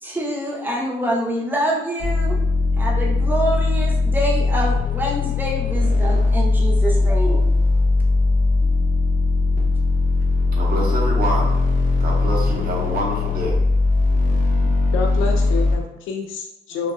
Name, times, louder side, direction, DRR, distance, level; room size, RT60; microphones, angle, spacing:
voice 1, 0.0-2.4 2.8-7.4 14.3-14.7, right 1 dB, 10° right, -3 dB, 0.6 m, -26 dB
sound 1, 2.0-15.8, left 3 dB, 40° left, 0.7 m, -19 dB
voice 2, 10.5-11.5 12.0-13.6, right 1 dB, 50° right, -2 dB, 0.8 m, -26 dB
voice 3, 14.9-16.9, left 5 dB, 80° left, 2 dB, 0.4 m, -28 dB
2.6 x 2.2 x 2.3 m, 0.91 s
cardioid pair, 90°, 20 cm